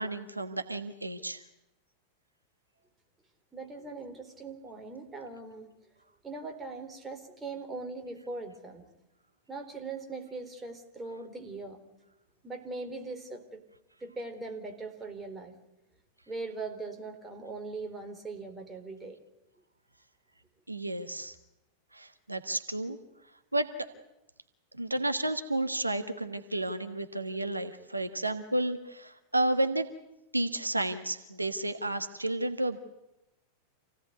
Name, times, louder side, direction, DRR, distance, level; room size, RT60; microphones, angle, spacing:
voice 1, 0.0-1.4 20.7-21.3 21.9-23.0 23.5-23.7 24.8-29.9 30.3-32.8, right 1 dB, 85° right, 8 dB, 1.3 m, -31 dB
voice 2, 3.5-5.7 6.2-8.9 9.5-11.8 12.4-13.6 14.0-15.5 16.3-19.2, right 3 dB, 15° right, 4 dB, 4.1 m, -40 dB
27.5 x 17.0 x 9.5 m, 0.90 s
figure-of-eight pair, 90°, 0 cm